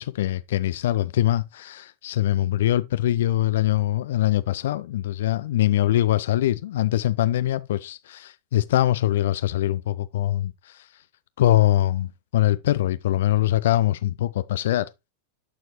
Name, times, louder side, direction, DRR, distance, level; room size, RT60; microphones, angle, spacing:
voice 1, 0.0-10.9 11.4-14.9, left 13 dB, 60° left, 0.3 m, -23 dB
11.5 x 4.5 x 3.0 m
figure-of-eight pair, 90°, 0 cm